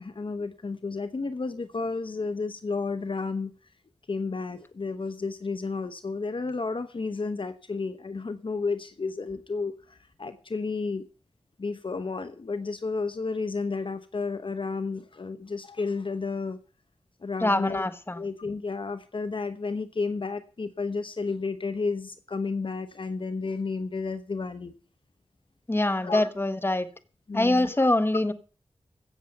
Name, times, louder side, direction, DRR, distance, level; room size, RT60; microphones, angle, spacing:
voice 1, 0.0-3.5 4.1-11.0 11.6-16.6 17.2-17.9 18.2-24.7 26.0-26.3 27.3-27.9, left 4 dB, 55° left, 10 dB, 0.9 m, -32 dB
voice 2, 17.4-18.2 25.7-26.9 27.3-28.3, left 1 dB, 20° left, 11 dB, 1.3 m, -24 dB
15.5 x 7.0 x 6.6 m, 0.38 s
wide cardioid pair, 60°, 10 cm